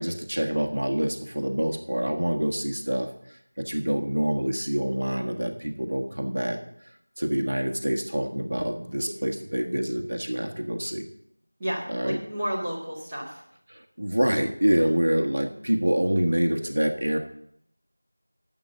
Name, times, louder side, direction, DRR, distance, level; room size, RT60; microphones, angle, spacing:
voice 1, 0.0-3.1 3.6-6.6 7.2-11.0 11.9-12.2 13.7-17.2, equal, 55° right, 3 dB, 1.4 m, -26 dB
voice 2, 11.6-13.4 14.8-14.9, equal, 10° right, -8 dB, 1.6 m, -32 dB
11.5 x 7.2 x 6.6 m, 0.72 s
figure-of-eight pair, 175°, 0 cm